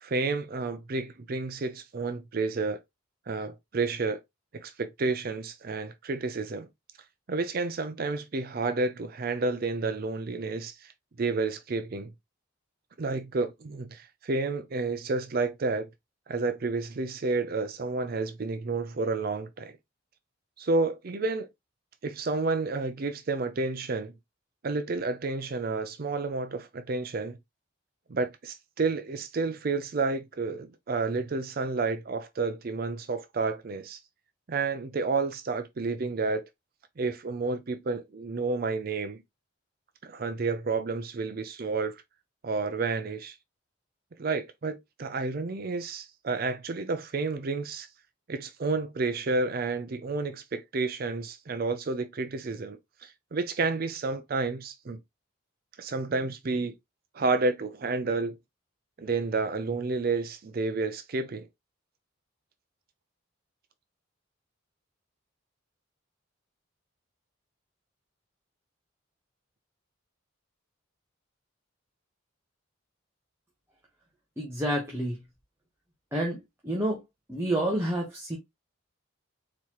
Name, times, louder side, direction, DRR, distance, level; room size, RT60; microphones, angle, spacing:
voice 1, 0.0-2.8 3.3-4.2 4.5-6.7 7.3-10.9 11.2-12.1 13.0-15.9 16.3-19.8 20.6-21.5 22.0-24.1 24.6-27.4 28.1-34.0 34.5-36.4 37.0-39.2 40.0-42.0 42.4-43.4 44.2-47.9 48.3-55.0 55.8-56.7 57.1-58.4 59.0-61.5, right 3 dB, 45° right, 0.5 m, -30 dB
voice 2, 74.4-75.2 76.1-76.4 76.6-77.0 77.3-78.4, right 1 dB, 15° right, 1.1 m, -28 dB
4.2 x 4.1 x 3.0 m
head